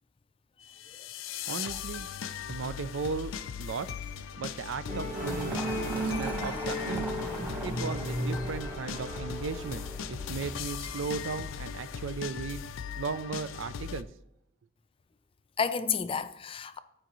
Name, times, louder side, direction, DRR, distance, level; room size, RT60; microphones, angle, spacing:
sound 1, 0.7-14.0, left 7 dB, 85° left, 0.4 m, -39 dB
voice 1, 0.8-1.2 15.6-16.8, left 6 dB, 30° left, 0.4 m, -32 dB
voice 2, 1.5-2.1 2.5-3.3 3.6-3.9 4.4-5.6 5.9-7.1 7.6-12.6 13.0-14.1, right 5 dB, 70° right, 0.4 m, -36 dB
Musical instrument, 4.9-11.5, right 1 dB, 40° right, 1.7 m, -36 dB
sound 2, 5.1-12.0, equal, 10° right, 1.4 m, -42 dB
13.5 x 5.0 x 3.1 m
head